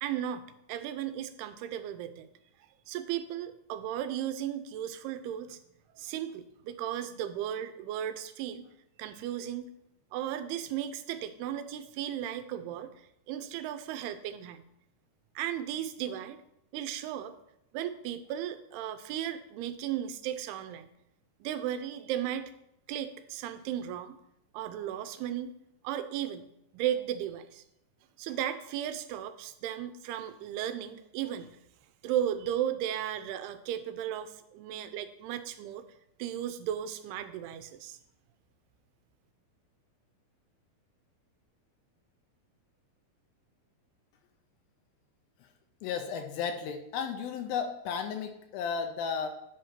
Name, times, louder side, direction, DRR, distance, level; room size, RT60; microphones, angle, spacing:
voice 1, 0.0-2.3 2.9-5.6 6.0-8.7 9.0-9.7 10.1-14.6 15.4-16.4 16.7-17.3 17.7-20.9 21.4-22.5 22.9-24.2 24.5-25.5 25.8-26.5 26.7-27.6 28.2-31.6 32.0-35.8 36.2-38.0, right 10 dB, 85° right, 11 dB, 2.6 m, -35 dB
voice 2, 45.8-49.3, left 6 dB, 80° left, 6 dB, 2.3 m, -34 dB
10.5 x 5.1 x 4.4 m, 0.81 s
omnidirectional pair, 4.5 m